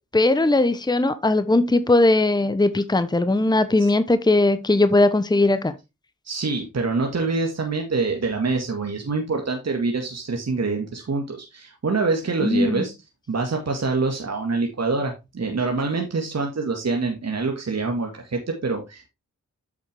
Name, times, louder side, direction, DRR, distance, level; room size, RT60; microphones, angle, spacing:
voice 1, 0.1-5.8 12.4-12.9, left 2 dB, 10° left, 1.0 m, -19 dB
voice 2, 6.2-12.9 13.3-19.1, right 3 dB, 50° right, 2.0 m, -25 dB
8.2 x 6.5 x 3.5 m
supercardioid pair, 40°, 33 cm